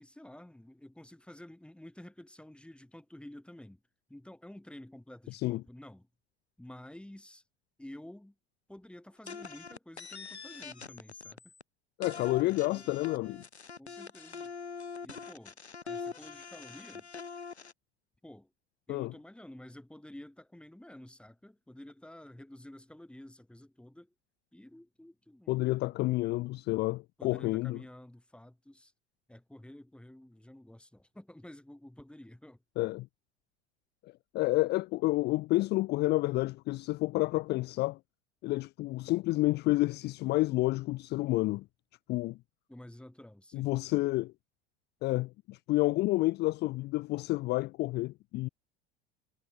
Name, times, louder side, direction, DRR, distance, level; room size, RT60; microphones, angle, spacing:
voice 1, 0.0-3.8 4.1-6.1 6.6-7.4 7.8-8.4 8.7-11.5 12.2-13.0 13.8-14.5 15.0-15.6 15.8-17.1 18.2-18.5 18.9-24.1 24.5-26.1 27.2-28.9 29.3-32.6 42.7-43.7, left 1 dB, 5° left, 3.5 m, -51 dB
bleeper processed, 9.3-11.6 12.0-17.7, left 5 dB, 85° left, 1.3 m, -44 dB
voice 2, 12.0-13.4 18.9-19.1 25.5-27.8 32.8-33.1 34.0-38.0 38.4-41.7 42.1-42.4 43.5-44.3 45.0-48.5, left 19 dB, 30° left, 0.5 m, -29 dB
figure-of-eight pair, 70°, 32 cm